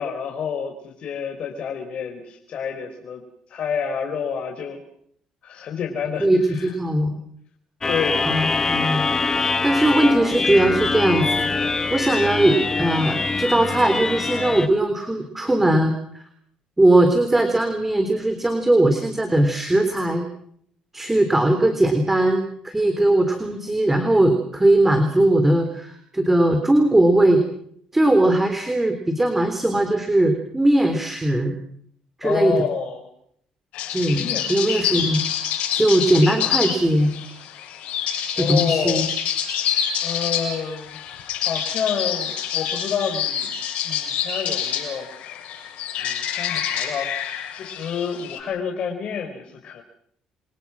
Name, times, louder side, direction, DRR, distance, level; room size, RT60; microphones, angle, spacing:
voice 1, 0.0-3.2 3.5-4.8 5.4-6.7 7.9-8.6 32.2-33.1 34.2-34.8 38.4-39.1 40.0-41.0 41.4-43.5 43.8-45.4 46.0-47.1 47.5-49.8, left 7 dB, 55° left, 2 dB, 4.8 m, -29 dB
voice 2, 6.2-7.2 8.3-9.1 9.3-11.5 11.9-16.2 16.8-20.3 20.9-27.4 27.9-31.5 32.2-32.5 33.9-35.2 35.7-37.1 38.4-39.0, right 1 dB, 10° right, 6 dB, 3.7 m, -19 dB
sound 1, 7.8-14.7, left 4 dB, 20° left, 2.4 m, -23 dB
sound 2, 33.7-48.4, left 9 dB, 75° left, 7.3 m, -27 dB
29.0 x 24.5 x 6.2 m, 0.68 s
cardioid pair, 125°, 2 cm